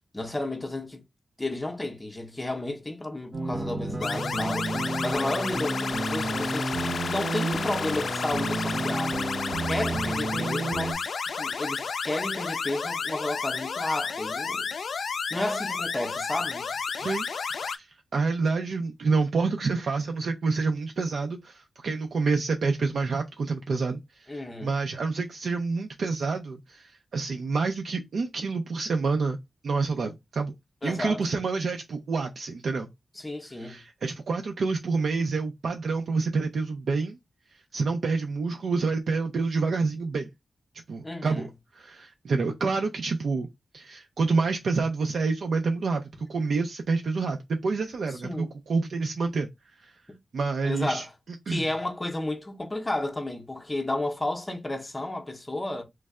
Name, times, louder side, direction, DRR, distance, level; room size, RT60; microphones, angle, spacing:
voice 1, 0.1-1.0 1.4-4.7 5.0-9.3 9.7-11.0 11.4-14.7 15.3-16.7 24.3-24.7 30.8-31.2 33.2-33.8 41.0-41.5 48.1-48.5 50.6-51.1 51.5-55.8, left 2 dB, 15° left, 0.6 m, -32 dB
sound 1, 3.3-10.9, right 2 dB, 35° right, 0.6 m, -31 dB
sound 2, 4.0-17.8, left 5 dB, 70° left, 0.4 m, -32 dB
voice 2, 18.1-29.4 29.6-30.5 30.8-32.9 33.5-37.2 37.7-40.3 40.9-41.5 41.7-43.5 43.7-49.5 49.8-49.9 50.3-51.1 51.5-51.7, right 4 dB, 80° right, 0.5 m, -28 dB
3.2 x 2.1 x 3.5 m
wide cardioid pair, 165°, 0 cm